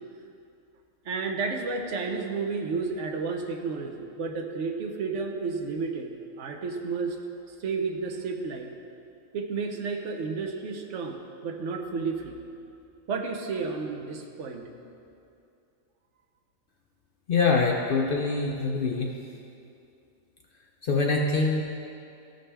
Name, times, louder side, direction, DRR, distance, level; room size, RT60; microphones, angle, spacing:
voice 1, 1.0-7.2 7.6-8.7 9.3-12.4 13.1-14.7, right 4 dB, 65° right, 3 dB, 1.1 m, -32 dB
voice 2, 17.3-19.1 20.8-21.6, left 4 dB, 55° left, 0 dB, 0.6 m, -24 dB
13.5 x 5.2 x 3.4 m, 2.6 s
omnidirectional pair, 1.4 m